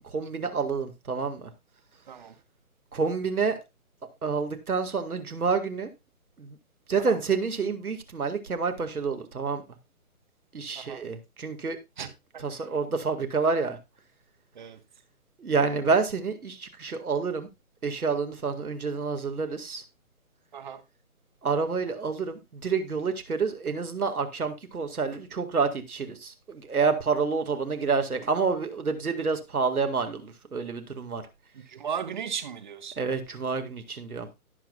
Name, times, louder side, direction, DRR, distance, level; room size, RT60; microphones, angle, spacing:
voice 1, 0.0-1.5 2.9-3.6 4.2-5.9 6.4-6.6 6.9-9.6 10.5-11.8 12.4-13.8 15.4-17.5 17.8-19.8 21.4-31.2 33.0-34.3, right 5 dB, 75° right, 2.0 m, -28 dB
voice 2, 31.5-32.9, right 7 dB, 30° right, 1.1 m, -36 dB
17.0 x 6.1 x 2.4 m
figure-of-eight pair, 150°, 45 cm